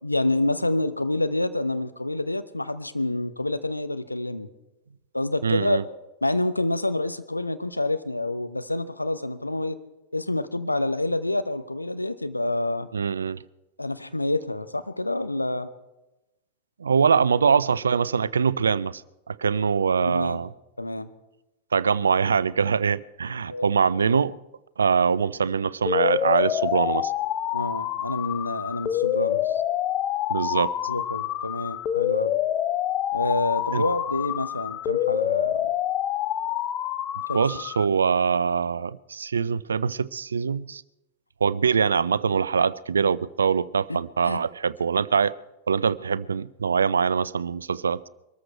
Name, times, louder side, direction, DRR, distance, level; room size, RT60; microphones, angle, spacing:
voice 1, 0.0-4.5 5.1-5.8 6.2-9.8 10.1-12.9 13.8-15.7 20.0-20.4 20.8-21.1 23.5-23.7 27.5-29.6 30.9-32.4 33.1-35.7 37.3-37.4 43.9-44.0 44.2-44.4, left 2 dB, 85° left, 0.8 m, -27 dB
voice 2, 5.4-5.8 12.9-13.4 16.8-19.0 19.3-20.5 21.7-24.4 24.8-27.1 30.3-30.7 33.7-33.8 37.3-40.8 41.4-45.3 45.7-48.0, right 6 dB, 70° right, 0.4 m, -23 dB
sound 1, 25.9-37.9, left 11 dB, 35° left, 0.6 m, -27 dB
23.0 x 14.0 x 4.5 m
figure-of-eight pair, 90°, 0 cm